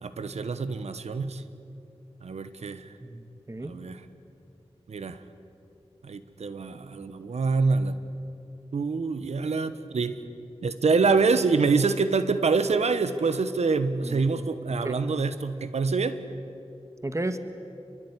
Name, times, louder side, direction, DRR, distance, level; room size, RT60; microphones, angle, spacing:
voice 1, 0.0-1.4 2.2-2.9 3.6-4.0 4.9-5.2 6.0-8.0 8.7-10.2 10.6-16.2, right 4 dB, 90° right, 12 dB, 1.4 m, -26 dB
voice 2, 3.0-3.7 14.0-14.5 14.8-14.9 17.0-17.4, right 1 dB, 30° right, 9 dB, 1.7 m, -33 dB
26.0 x 23.0 x 9.8 m, 2.7 s
wide cardioid pair, 60°, 11 cm